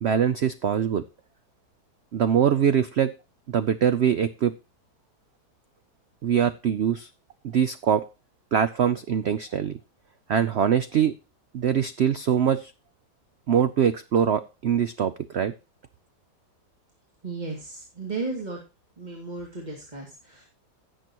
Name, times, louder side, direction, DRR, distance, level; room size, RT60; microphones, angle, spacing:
voice 1, 0.0-1.0 2.1-3.1 3.5-4.5 6.2-7.1 7.4-8.0 8.5-9.8 10.3-11.1 11.5-12.7 13.5-15.5, right 8 dB, 80° right, 13 dB, 0.5 m, -23 dB
voice 2, 17.2-18.6 19.0-20.5, right 3 dB, 25° right, -1 dB, 2.3 m, -34 dB
16.5 x 7.0 x 2.9 m, 0.30 s
omnidirectional pair, 1.8 m